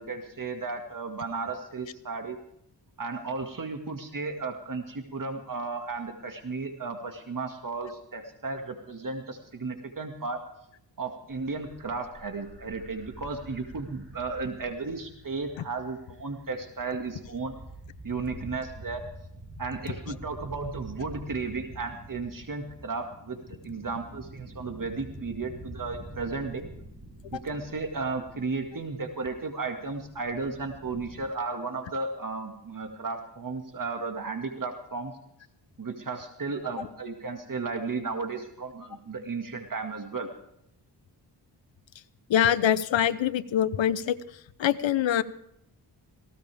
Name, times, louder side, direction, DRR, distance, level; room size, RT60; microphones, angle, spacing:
voice 1, 0.0-2.4 3.0-10.4 11.0-17.6 18.0-19.0 19.6-23.4 23.6-26.7 27.3-35.1 35.8-40.3, right 4 dB, 45° right, 4 dB, 2.1 m, -34 dB
sound 1, 11.3-31.2, right 1 dB, 25° right, 7.3 m, -47 dB
voice 2, 42.3-44.2 44.6-45.2, left 10 dB, 90° left, 14 dB, 0.9 m, -24 dB
18.5 x 17.0 x 3.5 m, 0.75 s
cardioid pair, 75°, 44 cm